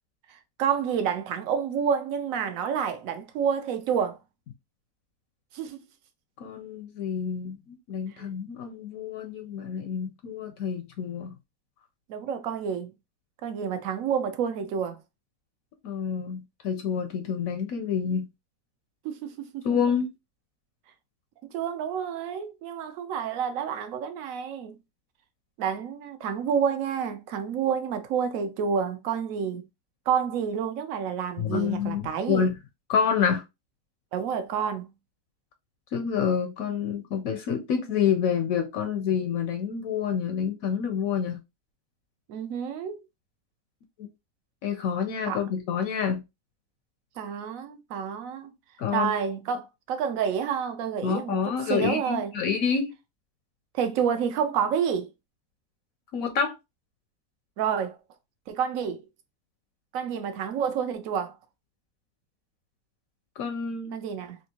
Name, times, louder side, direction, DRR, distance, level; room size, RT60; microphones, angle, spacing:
voice 1, 0.3-4.2 5.5-5.8 8.2-8.3 12.1-12.9 13.4-15.0 19.0-19.7 21.5-24.8 25.6-29.6 30.1-32.5 34.1-34.9 42.3-43.0 45.3-45.4 47.2-48.5 48.9-51.4 51.7-52.3 53.7-55.1 57.6-58.0 58.5-59.0 59.9-61.3 63.9-64.4, right 7 dB, 65° right, 0.9 m, -29 dB
voice 2, 6.4-11.3 15.8-18.3 19.6-20.1 31.4-32.6 32.9-33.4 35.9-41.4 44.0-44.1 44.6-46.2 48.8-49.1 51.0-52.9 56.1-56.5 63.4-64.0, left 7 dB, 70° left, 0.9 m, -28 dB
3.4 x 2.7 x 2.8 m
omnidirectional pair, 1.7 m